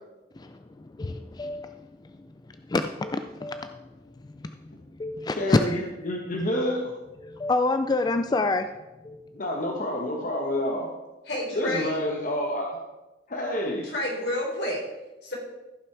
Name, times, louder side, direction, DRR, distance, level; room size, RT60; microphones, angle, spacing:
voice 1, 0.3-3.9 4.2-5.8 7.2-8.7 9.0-9.4, left 2 dB, 25° left, 8 dB, 0.4 m, -28 dB
voice 2, 5.3-6.9 9.3-10.9 11.5-12.8 13.3-13.9, left 1 dB, 50° left, 0 dB, 1.3 m, -28 dB
voice 3, 11.3-12.0 13.8-14.8 15.2-15.4, left 1 dB, 75° left, -2 dB, 3.9 m, -29 dB
14.5 x 6.0 x 4.7 m, 1.0 s
head